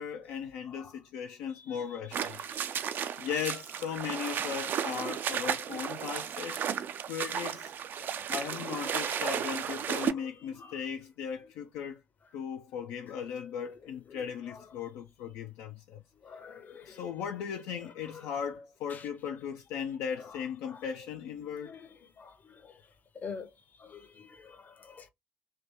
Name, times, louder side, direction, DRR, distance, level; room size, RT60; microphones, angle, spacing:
voice 1, 0.0-2.4 2.8-6.6 7.1-7.7 8.3-12.0 12.3-16.0 16.9-21.7, left 7 dB, 60° left, 0.4 m, -37 dB
voice 2, 0.6-1.0 1.5-3.6 4.9-5.8 8.0-10.9 11.4-11.5 12.2-12.4 13.1-13.2 13.6-14.8 16.1-17.2 17.5-18.5 18.9-19.1 20.2-20.9 21.4-25.1, left 6 dB, 40° left, 0.8 m, -50 dB
sound 1, 2.1-10.1, right 8 dB, 45° right, 0.4 m, -34 dB
3.3 x 2.9 x 2.8 m
figure-of-eight pair, 50°, 5 cm